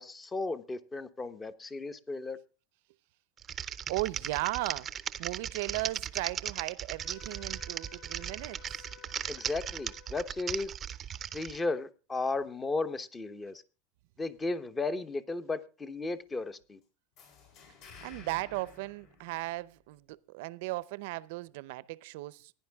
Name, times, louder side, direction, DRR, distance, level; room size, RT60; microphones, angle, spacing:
voice 1, 0.0-2.4 9.3-10.7 11.3-13.6 14.2-16.8, left 3 dB, 15° left, 0.9 m, -35 dB
Typing, 3.4-11.6, right 9 dB, 25° right, 0.6 m, -37 dB
voice 2, 3.9-8.9 18.0-22.5, right 20 dB, 65° right, 0.6 m, -36 dB
Wind instrument woodwind instrument, 7.0-10.4, left 11 dB, 30° left, 7.1 m, -55 dB
sound 1, 17.2-19.9, left 5 dB, 60° left, 6.8 m, -53 dB
16.0 x 10.5 x 3.5 m
supercardioid pair, 145°, 0 cm